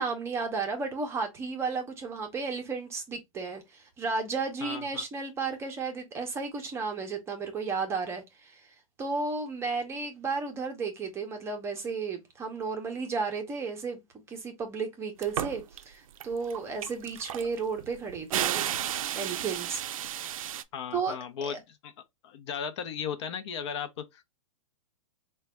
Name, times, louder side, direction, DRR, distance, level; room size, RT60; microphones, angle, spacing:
voice 1, 0.0-8.7 9.0-14.0 14.3-18.7 19.1-20.4 20.9-21.1 21.4-21.6, right 4 dB, 15° right, 0.6 m, -33 dB
voice 2, 4.6-5.0 20.7-21.9 22.2-24.2, left 7 dB, 55° left, 0.7 m, -36 dB
sound 1, 15.2-15.8 16.2-20.6, right 11 dB, 80° right, 0.4 m, -33 dB
3.9 x 2.2 x 3.3 m
hypercardioid pair, 145°, 17 cm